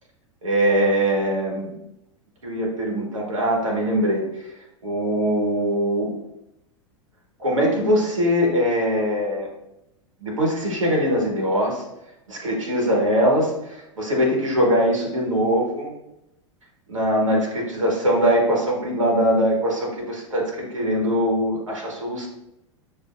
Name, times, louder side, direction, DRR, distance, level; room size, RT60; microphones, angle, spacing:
voice 1, 0.4-1.7 2.4-4.2 4.8-6.2 7.4-9.5 10.2-11.8 12.3-15.9 16.9-22.3, equal, 80° right, -1 dB, 1.2 m, -22 dB
6.5 x 2.6 x 2.4 m, 0.86 s
figure-of-eight pair, 95°, 16 cm